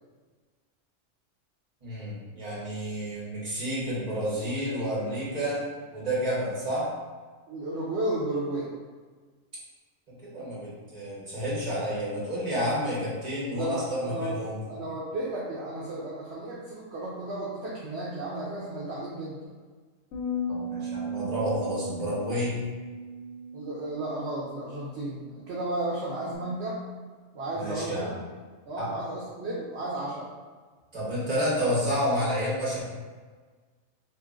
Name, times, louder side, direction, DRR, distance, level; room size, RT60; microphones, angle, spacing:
voice 1, 1.8-5.6 5.9-6.9 10.1-14.6 20.5-22.6 27.5-28.2 28.8-28.9 30.9-32.8, equal, 35° right, -8 dB, 1.3 m, -30 dB
voice 2, 7.5-8.7 13.5-14.4 14.7-19.5 23.5-26.8 27.3-28.1 28.7-30.3, right 1 dB, 60° right, -5 dB, 0.8 m, -33 dB
sound 1, 20.1-26.4, right 1 dB, 70° left, 0.9 m, -37 dB
2.8 x 2.5 x 3.6 m, 1.4 s
omnidirectional pair, 1.4 m